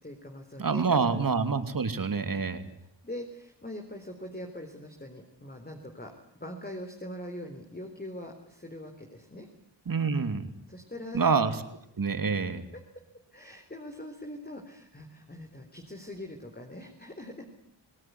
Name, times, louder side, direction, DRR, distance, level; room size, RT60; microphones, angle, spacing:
voice 1, 0.0-1.2 2.8-6.1 6.4-9.5 10.7-11.3 12.7-12.8 13.3-17.4, left 1 dB, 20° left, 3 dB, 4.1 m, -42 dB
voice 2, 0.6-2.7 9.9-10.5 11.1-11.5 12.0-12.6, right 5 dB, 45° right, 9 dB, 3.0 m, -27 dB
27.0 x 18.5 x 9.6 m, 0.74 s
cardioid pair, 55°, 45 cm